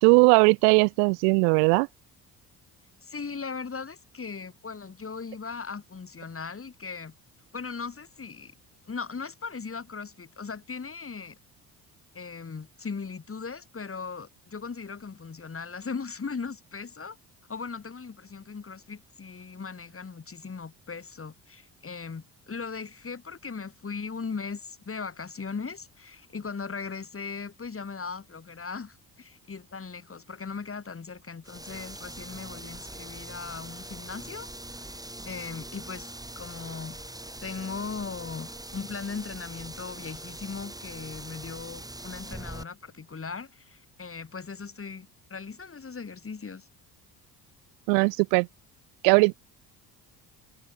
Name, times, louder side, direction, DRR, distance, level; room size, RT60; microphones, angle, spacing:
voice 1, 0.0-1.9 47.9-48.5 49.0-49.3, right 40 dB or more, 70° right, 2.0 m, -19 dB
voice 2, 3.0-7.1 7.5-8.5 8.9-11.4 12.1-17.2 17.5-34.5 34.9-37.0 37.4-46.7, left 5 dB, 25° left, 4.0 m, -38 dB
sound 1, 31.4-42.6, right 1 dB, 5° right, 3.4 m, -42 dB
figure-of-eight pair, 50°, 49 cm